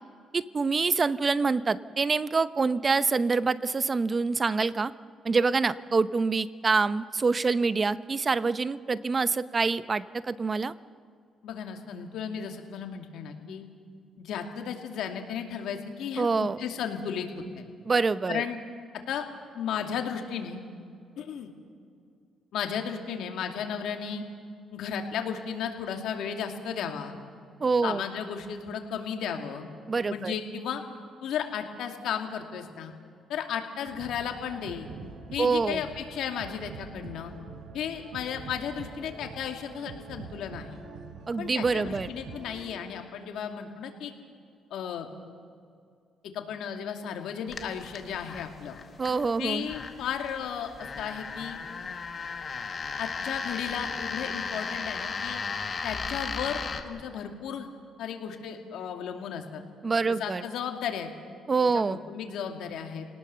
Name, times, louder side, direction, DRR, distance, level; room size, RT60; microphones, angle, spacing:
voice 1, 0.3-4.9 5.2-10.7 16.2-16.6 17.8-18.4 27.6-28.0 29.9-30.3 35.4-35.8 41.3-42.1 49.0-49.7 59.8-60.4 61.5-62.0, right 4 dB, 35° right, 15 dB, 0.8 m, -26 dB
voice 2, 11.4-13.6 14.2-17.6 18.3-18.6 19.1-19.2 19.5-20.6 21.2-21.5 22.5-24.2 24.7-27.1 27.8-29.7 30.1-30.8 31.2-32.9 33.3-34.9 35.3-37.3 37.7-40.8 41.4-44.1 44.7-45.1 46.3-48.8 49.4-50.7 51.0-51.6 53.0-55.4 55.8-57.7 58.0-59.6 60.1-61.1 61.6-63.1, left 8 dB, 80° left, 4 dB, 2.4 m, -34 dB
sound 1, 33.9-42.6, right 4 dB, 75° right, 4.2 m, -44 dB
sound 2, 47.5-56.8, left 5 dB, 40° left, 1.9 m, -36 dB
28.5 x 18.5 x 6.9 m, 2.3 s
cardioid pair, 90°, 0 cm